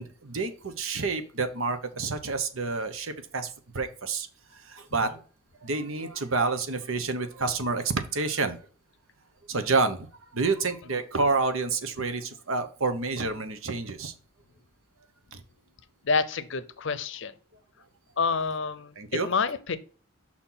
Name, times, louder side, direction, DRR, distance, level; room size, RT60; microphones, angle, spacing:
voice 1, 0.0-4.3 4.5-5.1 5.6-8.6 9.5-10.1 10.3-14.1 15.3-15.4 19.0-19.3, right 3 dB, 70° right, 8 dB, 1.0 m, -29 dB
voice 2, 16.0-17.3 18.2-19.8, left 4 dB, 60° left, 14 dB, 0.6 m, -28 dB
6.0 x 4.4 x 5.7 m, 0.40 s
head